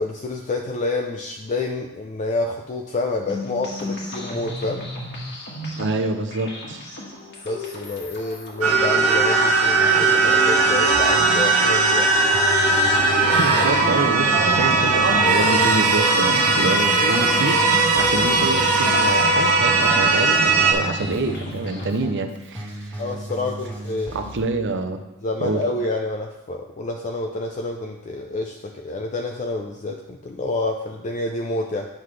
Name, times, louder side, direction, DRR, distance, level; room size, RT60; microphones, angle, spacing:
voice 1, 0.0-4.9 7.4-12.1 16.9-17.1 23.0-24.1 25.2-31.9, left 2 dB, 35° left, 2 dB, 0.5 m, -28 dB
sound 1, 3.3-22.1, left 1 dB, 50° left, 1.6 m, -35 dB
voice 2, 5.8-6.8 13.0-23.0 24.1-25.0 25.4-25.6, right 3 dB, 55° right, 6 dB, 0.7 m, -27 dB
sound 2, 8.6-20.7, right 3 dB, 85° right, 1.4 m, -18 dB
Keyboard (musical), 12.3-24.4, left 1 dB, 5° left, 1.8 m, -35 dB
9.1 x 5.9 x 3.2 m, 0.98 s
head